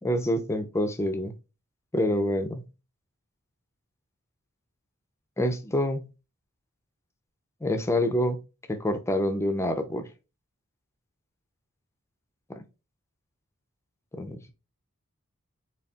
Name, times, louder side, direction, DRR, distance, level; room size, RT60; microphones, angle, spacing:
voice 1, 0.0-1.4 1.9-2.7 5.4-6.1 7.6-8.4 8.7-10.1 12.5-12.6 14.1-14.5, left 1 dB, 10° left, 0.5 m, -27 dB
4.2 x 3.1 x 2.3 m
head